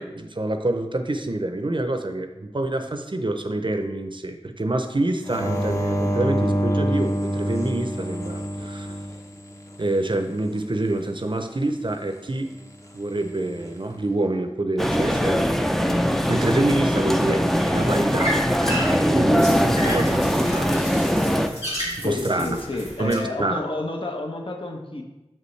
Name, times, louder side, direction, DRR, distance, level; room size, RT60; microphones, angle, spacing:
voice 1, 0.0-8.9 9.8-12.5 12.9-15.4 16.3-18.4 19.1-20.8 21.0-21.6 22.0-22.6 23.0-23.6, right 2 dB, 45° right, 7 dB, 0.6 m, -26 dB
sound 1, 5.2-9.9 13.1-13.7, equal, 30° left, 0.9 m, -26 dB
sound 2, 14.8-21.5, equal, 5° left, 0.5 m, -21 dB
voice 2, 15.2-15.6 22.0-25.0, left 2 dB, 55° left, 2 dB, 0.9 m, -30 dB
sound 3, 17.5-23.1, equal, 80° left, 2.5 m, -33 dB
7.3 x 5.3 x 3.2 m, 1.0 s
wide cardioid pair, 40°, 11 cm